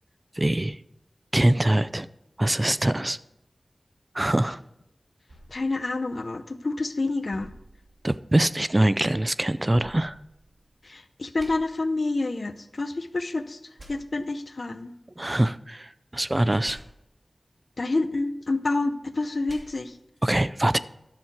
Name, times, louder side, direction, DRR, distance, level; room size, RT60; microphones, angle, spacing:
voice 1, 0.4-0.8 1.3-2.1 2.4-3.2 4.1-4.6 8.0-10.2 15.2-16.8 20.2-20.8, right 1 dB, 30° right, 16 dB, 0.4 m, -23 dB
sound 1, 5.3-6.7 7.3-8.5 9.7-10.9 11.4-11.5 13.8-13.9 16.6-16.8 19.5-19.6, right 1 dB, 60° right, 2.6 m, -49 dB
voice 2, 5.5-7.5 10.8-13.6 13.9-14.9 17.8-20.0, left 2 dB, 65° left, 11 dB, 0.7 m, -28 dB
10.5 x 7.2 x 4.6 m, 0.86 s
cardioid pair, 40°, 0 cm